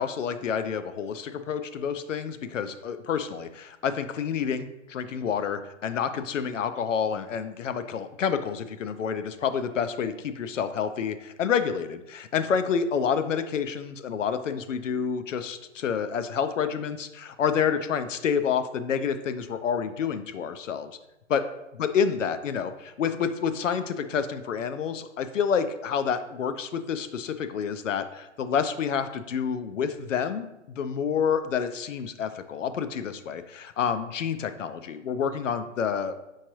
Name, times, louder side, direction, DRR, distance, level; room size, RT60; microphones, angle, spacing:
voice 1, 0.0-20.9 21.3-21.4 21.8-36.2, left 7 dB, 80° left, 10 dB, 0.5 m, -28 dB
4.6 x 3.5 x 3.0 m, 0.94 s
hypercardioid pair, 145°, 37 cm